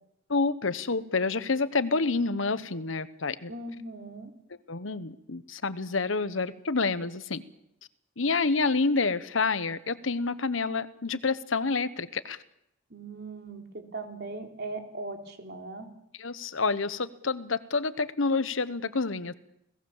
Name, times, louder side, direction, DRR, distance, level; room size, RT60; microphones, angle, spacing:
voice 1, 0.3-3.5 4.7-7.4 8.2-12.4 16.2-19.3, left 4 dB, 70° left, 14 dB, 1.2 m, -28 dB
voice 2, 3.5-4.3 12.9-15.9, right 2 dB, 55° right, 4 dB, 3.6 m, -39 dB
30.0 x 18.5 x 7.4 m, 0.80 s
head